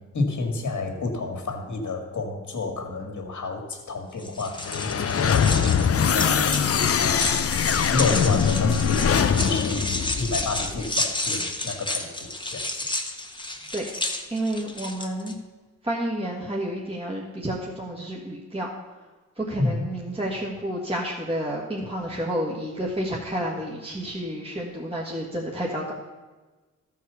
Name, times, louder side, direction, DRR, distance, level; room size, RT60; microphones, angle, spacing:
voice 1, 0.1-7.5 7.9-12.7 19.6-19.9, left 3 dB, 65° left, 4 dB, 1.9 m, -30 dB
sound 1, 4.2-15.3, left 2 dB, 15° left, 1.2 m, -31 dB
sound 2, 4.6-10.9, left 7 dB, 50° left, 0.6 m, -23 dB
voice 2, 14.3-15.4 15.8-18.8 19.4-25.9, right 1 dB, 20° right, -3 dB, 1.7 m, -30 dB
13.0 x 4.8 x 6.8 m, 1.3 s
cardioid pair, 60°, 31 cm